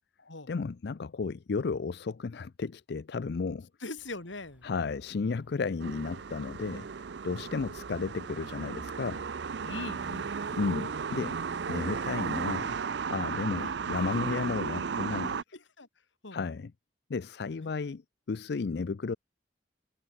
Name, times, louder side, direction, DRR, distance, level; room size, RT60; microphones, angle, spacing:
voice 1, 0.5-3.7 4.6-9.2 10.5-11.4 11.7-12.8 13.1-15.4 16.3-16.7 17.1-18.0 18.3-19.2, left 4 dB, 60° left, 0.4 m, -33 dB
voice 2, 3.8-4.7 9.6-10.3 13.6-13.7 14.1-14.2 15.8-15.9 16.2-16.4 17.6-17.7, left 2 dB, 80° left, 3.1 m, -41 dB
sound 1, 4.0-14.5, equal, 10° right, 6.4 m, -63 dB
sound 2, 5.8-15.4, right 6 dB, 65° right, 0.5 m, -35 dB
head